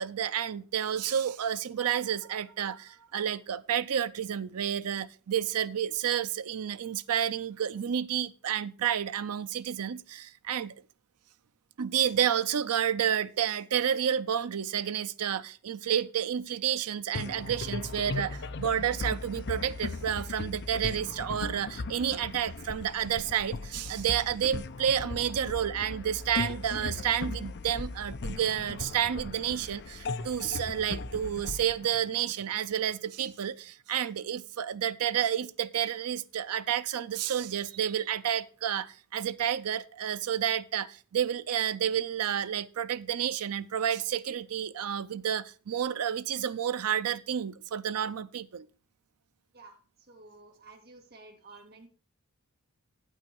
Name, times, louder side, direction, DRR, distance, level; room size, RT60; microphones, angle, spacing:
voice 1, 0.0-10.8 11.8-48.7, right 9 dB, 80° right, 0.5 m, -30 dB
sound 1, 17.1-32.8, left 3 dB, 50° left, 0.6 m, -38 dB
voice 2, 50.1-51.9, right 3 dB, 45° right, 2.2 m, -52 dB
8.9 x 8.5 x 4.5 m
head